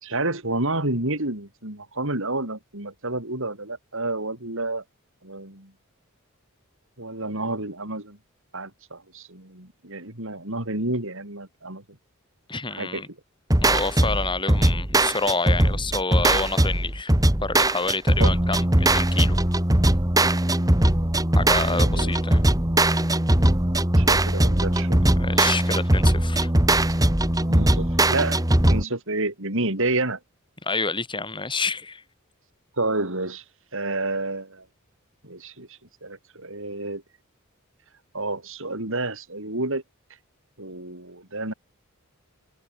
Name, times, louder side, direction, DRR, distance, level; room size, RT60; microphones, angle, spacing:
voice 1, 0.0-4.8 5.2-5.7 7.0-8.2 8.5-11.8 12.7-13.0 18.2-18.3 21.7-22.1 23.9-25.1 27.5-28.4 28.7-30.2 32.8-33.4 33.7-34.6 35.2-35.7 36.0-37.0 38.1-39.8 40.6-41.5, right 2 dB, 65° right, 6.7 m, -29 dB
voice 2, 12.5-13.1 13.6-17.1 17.4-19.4 21.4-22.4 25.2-26.5 30.6-32.0, left 3 dB, 20° left, 4.0 m, -28 dB
sound 1, 13.5-28.8, right 1 dB, 15° right, 1.7 m, -20 dB
head